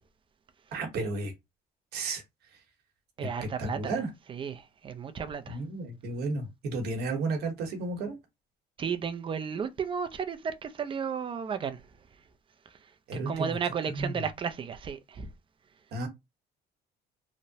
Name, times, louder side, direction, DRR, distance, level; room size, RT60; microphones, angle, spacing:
voice 1, 0.7-1.3 1.9-2.2 3.2-3.3 3.6-4.1 5.5-8.2 13.1-13.6 13.9-14.2 15.9-16.1, right 3 dB, 70° right, 1.0 m, -33 dB
voice 2, 3.2-4.0 4.3-5.6 8.8-11.8 13.1-15.3, right 6 dB, 30° right, 0.4 m, -33 dB
3.0 x 2.1 x 2.7 m
cardioid pair, 110°, 17 cm